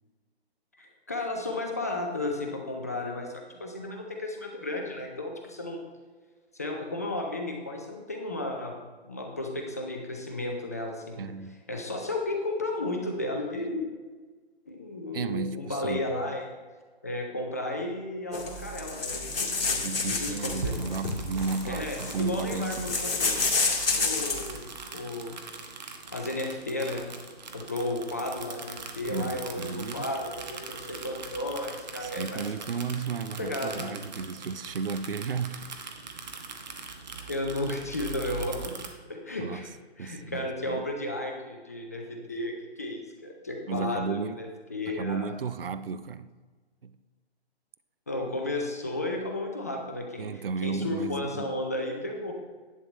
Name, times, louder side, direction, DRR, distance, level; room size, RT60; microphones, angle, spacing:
voice 1, 0.8-5.8 6.5-8.8 9.0-11.3 11.7-13.9 14.7-16.6 17.0-20.7 21.6-23.4 24.0-25.5 26.1-27.1 27.5-32.6 33.4-34.0 37.3-38.7 39.1-39.7 40.0-45.3 48.1-52.3, left 2 dB, 15° left, 0.5 m, -33 dB
voice 2, 11.2-11.6 15.1-16.0 19.8-23.0 29.1-30.1 32.0-35.7 39.4-39.6 40.0-40.8 43.7-44.4 44.9-46.3 46.8-46.9 50.2-51.5, right 5 dB, 60° right, 0.6 m, -33 dB
sound 1, 18.3-24.5, left 3 dB, 60° left, 2.1 m, -30 dB
sound 2, 20.3-38.9, right 4 dB, 40° right, 1.2 m, -41 dB
11.0 x 8.6 x 3.2 m
figure-of-eight pair, 145°, 32 cm